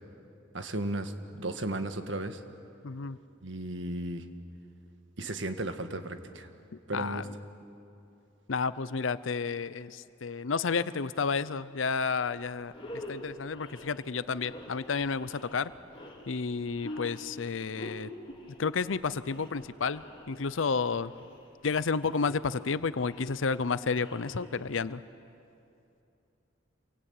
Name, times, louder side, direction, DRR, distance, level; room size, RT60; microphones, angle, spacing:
voice 1, 0.5-2.4 3.4-4.2 5.2-6.5 6.9-7.2, right 1 dB, 70° right, 8 dB, 1.7 m, -35 dB
voice 2, 2.8-3.2 6.9-7.3 8.5-15.7 16.3-18.1 18.6-21.1 21.6-25.0, left 5 dB, 90° left, 16 dB, 0.7 m, -31 dB
sound 1, 12.2-12.3 12.6-25.0, left 1 dB, 30° left, 4.0 m, -47 dB
28.0 x 24.0 x 8.9 m, 2.7 s
head